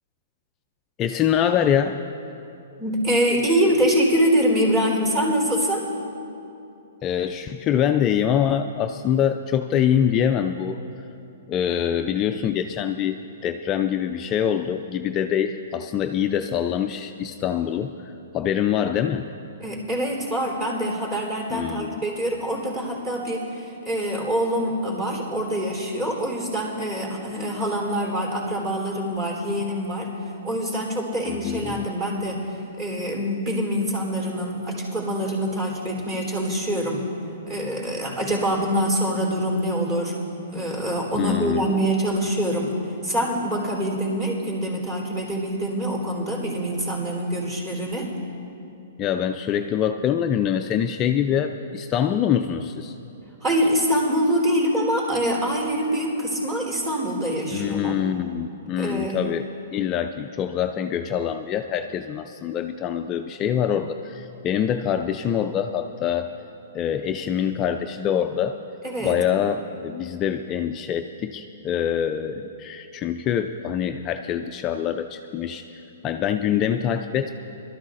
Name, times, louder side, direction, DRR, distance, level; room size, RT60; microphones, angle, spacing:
voice 1, 1.0-2.0 7.0-10.8 11.5-19.3 21.5-22.0 31.3-31.9 41.2-41.9 49.0-53.0 57.5-66.3 66.7-68.6 69.0-77.3, left 9 dB, 25° left, 6 dB, 0.4 m, -25 dB
voice 2, 2.8-5.9 19.6-30.1 30.4-37.0 37.5-40.2 40.5-48.1 53.4-58.0 58.8-59.2 68.8-69.2, equal, 25° right, -1 dB, 3.5 m, -25 dB
23.0 x 13.0 x 2.5 m, 2.8 s
hypercardioid pair, 145°, 0 cm